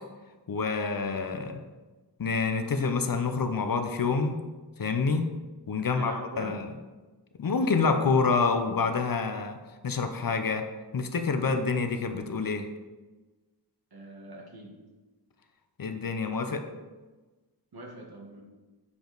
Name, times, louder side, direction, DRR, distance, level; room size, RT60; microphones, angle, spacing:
voice 1, 0.5-1.6 2.2-4.4 4.8-5.3 5.7-6.7 7.4-9.6 9.8-10.7 10.9-12.7 15.8-16.7, left 4 dB, 55° left, 7 dB, 0.7 m, -27 dB
voice 2, 5.8-6.6 13.9-14.8 17.7-18.4, right 2 dB, 60° right, 0 dB, 1.4 m, -43 dB
7.0 x 5.0 x 3.9 m, 1.2 s
wide cardioid pair, 85°, 42 cm